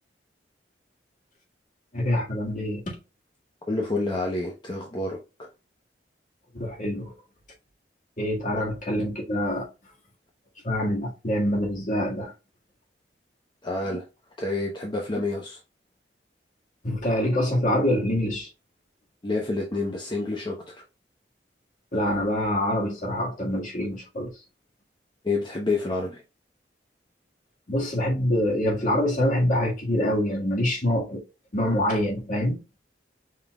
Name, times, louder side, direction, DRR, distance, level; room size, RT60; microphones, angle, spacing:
voice 1, 1.9-3.0 6.5-7.1 8.2-9.7 10.6-12.3 16.8-18.5 21.9-24.3 27.7-31.2 31.5-32.6, left 1 dB, 50° left, 1.7 m, -25 dB
voice 2, 3.7-5.2 13.6-14.1 14.4-15.6 19.2-20.8 25.2-26.2, left 2 dB, 25° left, 0.8 m, -28 dB
5.5 x 3.8 x 2.3 m
head